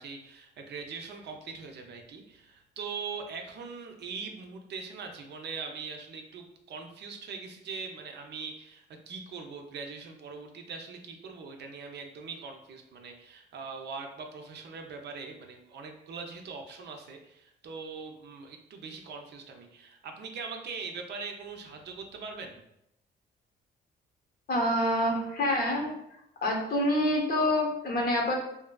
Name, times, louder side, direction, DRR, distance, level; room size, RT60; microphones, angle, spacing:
voice 1, 0.0-22.6, right 5 dB, 60° right, 3 dB, 0.5 m, -41 dB
voice 2, 24.5-25.9 26.4-28.3, left 1 dB, 50° left, 0 dB, 0.7 m, -26 dB
2.6 x 2.4 x 2.2 m, 0.80 s
cardioid pair, 90°, 20 cm